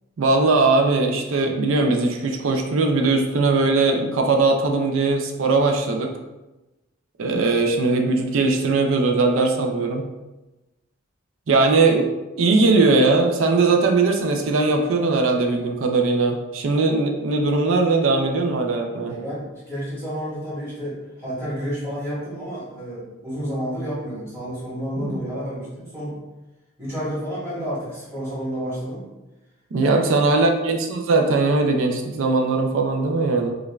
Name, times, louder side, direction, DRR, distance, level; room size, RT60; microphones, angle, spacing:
voice 1, 0.2-6.1 7.2-10.1 11.5-12.1 12.4-19.1 25.0-25.3 29.7-33.5, right 3 dB, 65° right, 3 dB, 0.4 m, -20 dB
voice 2, 19.1-26.2 26.8-29.0 29.8-30.4, equal, 15° right, -10 dB, 1.2 m, -30 dB
5.0 x 2.2 x 2.3 m, 1.0 s
head